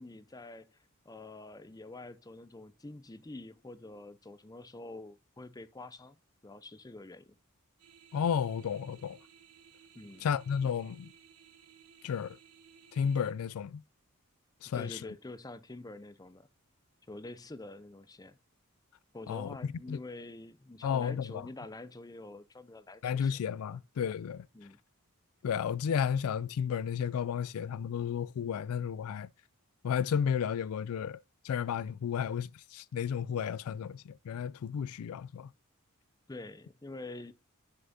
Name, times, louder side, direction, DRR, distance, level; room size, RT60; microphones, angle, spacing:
voice 1, 0.0-6.2 6.4-7.4 9.9-10.3 14.7-16.5 17.1-18.4 19.1-23.4 24.5-24.8 36.3-37.3, left 2 dB, 15° left, 0.5 m, -46 dB
sound 1, 7.8-13.3, right 8 dB, 85° right, 1.1 m, -59 dB
voice 2, 8.1-9.2 10.2-11.1 12.0-12.4 12.9-13.8 14.6-15.0 19.3-19.6 19.9-20.0 20.8-21.5 23.0-24.5 25.4-29.3 29.8-31.2 31.4-35.5, left 7 dB, 70° left, 0.3 m, -32 dB
10.5 x 6.9 x 2.7 m
head